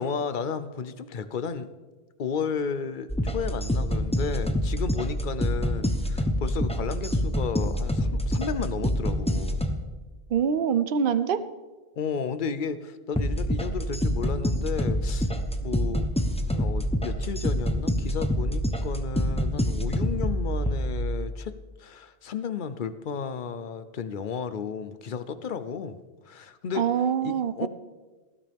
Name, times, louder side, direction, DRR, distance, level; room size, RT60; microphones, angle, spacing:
voice 1, 0.0-1.7 2.2-9.6 12.0-15.3 15.6-16.1 16.5-26.0 26.3-26.9 27.2-27.7, left 6 dB, 55° left, 12 dB, 0.8 m, -33 dB
sound 1, 3.1-9.7 13.1-21.0, equal, 5° left, 0.8 m, -27 dB
voice 2, 10.3-11.4 26.8-27.7, right 7 dB, 60° right, 13 dB, 0.8 m, -24 dB
19.0 x 12.5 x 3.5 m, 1.3 s
omnidirectional pair, 1.1 m